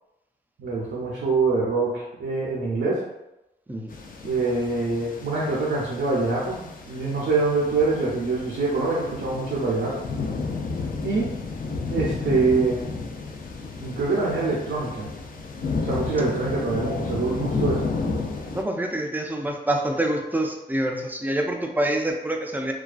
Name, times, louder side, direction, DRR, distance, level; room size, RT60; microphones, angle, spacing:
voice 1, 0.6-3.0 4.2-10.0 11.0-11.3 11.9-13.0 13.8-15.1 15.8-17.9, right 3 dB, 70° right, -6 dB, 0.6 m, -25 dB
sound 1, 3.9-18.6, left 4 dB, 50° left, 0.4 m, -32 dB
voice 2, 18.5-22.7, right 1 dB, 10° right, 2 dB, 0.4 m, -26 dB
2.3 x 2.2 x 2.4 m, 0.94 s
cardioid pair, 45°, 19 cm